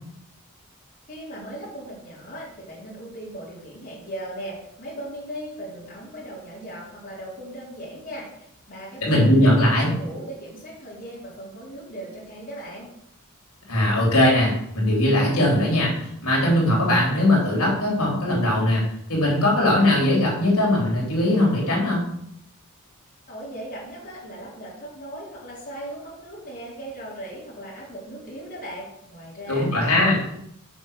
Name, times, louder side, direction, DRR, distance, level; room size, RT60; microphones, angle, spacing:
voice 1, 1.1-12.9 23.3-30.3, right 1 dB, 40° left, -7 dB, 3.7 m, -38 dB
voice 2, 9.0-9.9 13.7-15.9 16.2-18.8 19.1-22.1 29.5-30.2, left 1 dB, 85° left, -4 dB, 3.3 m, -20 dB
7.1 x 5.5 x 6.5 m, 0.74 s
head